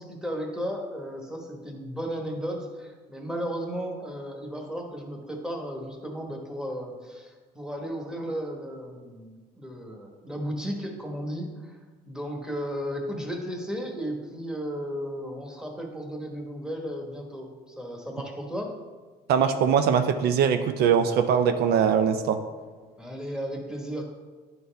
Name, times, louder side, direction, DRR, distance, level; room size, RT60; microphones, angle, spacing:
voice 1, 0.0-11.8 12.1-18.7 23.0-24.1, equal, 5° right, 1 dB, 1.2 m, -34 dB
voice 2, 19.3-22.4, right 7 dB, 70° right, 8 dB, 0.5 m, -22 dB
10.5 x 4.0 x 3.4 m, 1.4 s
cardioid pair, 110°, 17 cm